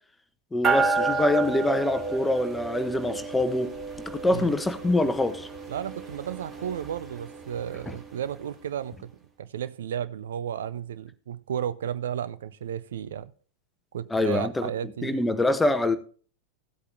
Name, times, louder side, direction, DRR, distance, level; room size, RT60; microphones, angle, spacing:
voice 1, 0.5-3.7 4.1-5.5 7.9-8.0 14.1-14.7 15.0-16.0, left 1 dB, 10° left, 0.9 m, -25 dB
sound 1, 0.6-8.3, right 3 dB, 25° right, 2.9 m, -31 dB
voice 2, 5.7-9.1 9.4-13.3 13.9-15.2, right 9 dB, 60° right, 0.5 m, -33 dB
15.5 x 8.2 x 2.7 m
figure-of-eight pair, 90°, 0 cm